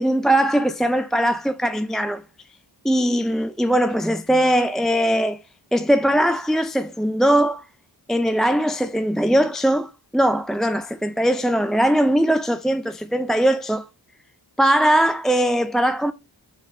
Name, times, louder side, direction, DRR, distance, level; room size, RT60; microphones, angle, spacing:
voice 1, 0.0-2.2 2.8-5.4 5.7-7.6 8.1-13.9 14.6-16.1, right 1 dB, ahead, 0.3 m, -20 dB
10.0 x 4.1 x 3.0 m
wide cardioid pair, 70°, 42 cm